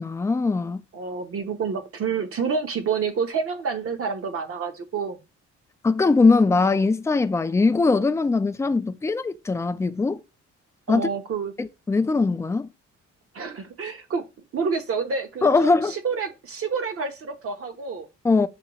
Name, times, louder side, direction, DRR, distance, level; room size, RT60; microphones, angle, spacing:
voice 1, 0.0-0.8 5.8-10.2 10.9-11.1 11.6-12.7 15.4-15.9 18.2-18.5, left 3 dB, 10° left, 0.3 m, -21 dB
voice 2, 0.9-5.2 10.9-11.5 13.3-14.2 14.5-18.1, right 5 dB, 50° right, 0.9 m, -28 dB
6.7 x 2.3 x 2.9 m
cardioid pair, 90°, 30 cm